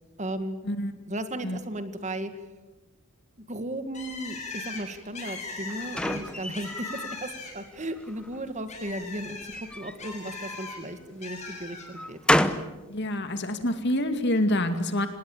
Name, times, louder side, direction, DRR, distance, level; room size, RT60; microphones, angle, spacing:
voice 1, 0.2-0.6 1.1-2.4 3.4-12.2, right 1 dB, 35° right, 10 dB, 1.8 m, -35 dB
Bird, 3.9-7.8 8.1-10.8 11.2-11.9, left 4 dB, 35° left, 7.1 m, -39 dB
sound 1, 5.3-7.2 7.7-8.4 9.4-10.9 11.4-12.8, left 1 dB, 5° left, 0.9 m, -30 dB
voice 2, 12.9-15.1, left 1 dB, 55° left, 8 dB, 2.4 m, -26 dB
26.5 x 19.0 x 8.6 m, 1.1 s
head